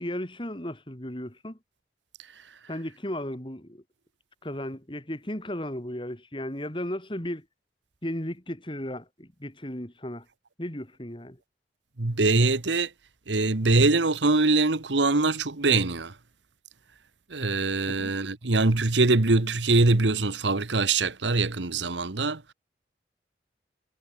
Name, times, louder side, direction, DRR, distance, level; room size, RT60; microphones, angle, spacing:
voice 1, 0.0-1.6 2.7-3.8 4.4-7.4 8.0-10.2 10.6-11.4 17.9-18.1, left 1 dB, 30° left, 3.2 m, -35 dB
voice 2, 12.0-12.9 13.3-16.1 17.3-22.5, right 3 dB, 90° right, 1.4 m, -23 dB
head